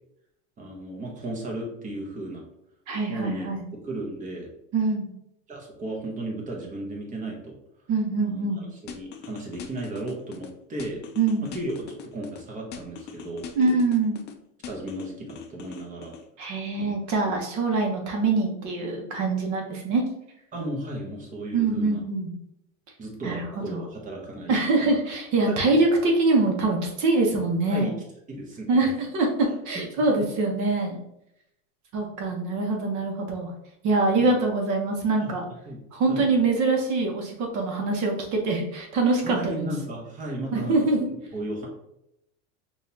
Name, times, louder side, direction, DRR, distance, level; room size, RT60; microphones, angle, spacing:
voice 1, 0.6-2.5 3.1-3.5 3.8-4.5 5.5-7.6 8.2-11.0 11.4-13.5 14.7-16.1 16.8-17.0 17.2-17.4 20.5-22.0 23.0-24.9 25.5-25.8 27.7-27.9 28.3-28.7 29.7-30.1 34.2-34.3 35.2-35.3 35.7-35.8 36.1-36.3 39.2-41.0 41.3-41.7, right 1 dB, 20° right, -1 dB, 1.1 m, -35 dB
voice 2, 2.9-3.6 4.7-5.1 7.9-8.6 11.2-11.5 13.6-14.2 16.4-20.0 21.5-22.3 23.2-23.4 23.7-23.8 24.5-27.9 28.7-31.0 31.9-33.5 33.8-35.4 35.9-39.7 40.5-41.1, right 3 dB, 50° right, 1 dB, 1.2 m, -24 dB
sound 1, 8.9-10.5 10.8-12.4 12.7-14.3 14.6-16.2, left 8 dB, 30° left, 0.4 m, -41 dB
5.1 x 2.7 x 2.8 m, 0.81 s
supercardioid pair, 135°, 38 cm